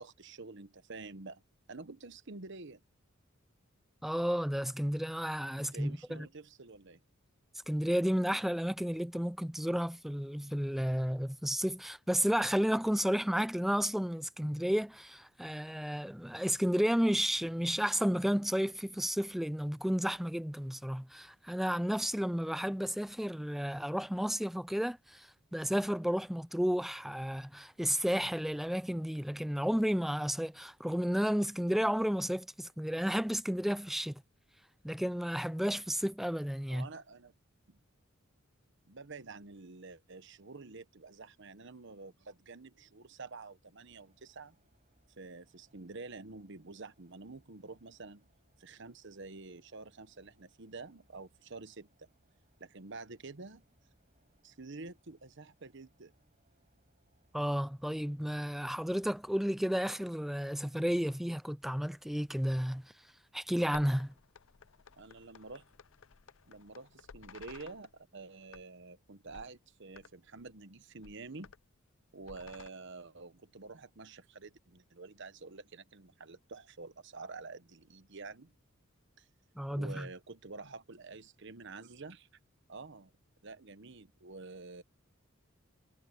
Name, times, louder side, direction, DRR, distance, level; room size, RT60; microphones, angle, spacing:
voice 1, 0.0-1.4 1.7-2.8 5.5-7.0 36.7-37.3 37.7-37.8 38.9-44.6 45.2-48.3 48.6-52.1 52.6-53.6 54.4-56.1 65.0-65.6 66.5-71.5 72.1-78.5 79.2-79.3 79.7-82.3 82.7-83.1 83.4-84.8, right 3 dB, 60° right, 1.1 m, -48 dB
voice 2, 4.0-6.3 7.7-34.2 34.8-36.9 57.3-62.9 63.3-64.1 79.6-80.1, equal, ahead, 0.3 m, -32 dB
sound 1, 43.8-59.6, right 1 dB, 35° right, 6.6 m, -73 dB
sound 2, 63.7-68.0 68.4-68.9 69.3-69.6 69.9-70.1 70.4-70.6 71.0-71.6 72.2-72.7, left 6 dB, 75° left, 0.6 m, -55 dB
head